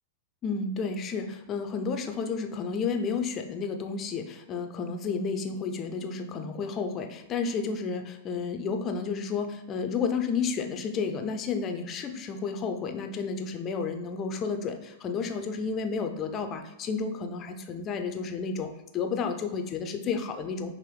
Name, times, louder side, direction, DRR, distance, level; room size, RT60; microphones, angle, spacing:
voice 1, 0.4-20.7, left 5 dB, 30° left, 6 dB, 0.5 m, -31 dB
5.3 x 2.5 x 3.3 m, 0.96 s
hypercardioid pair, 120°, 0 cm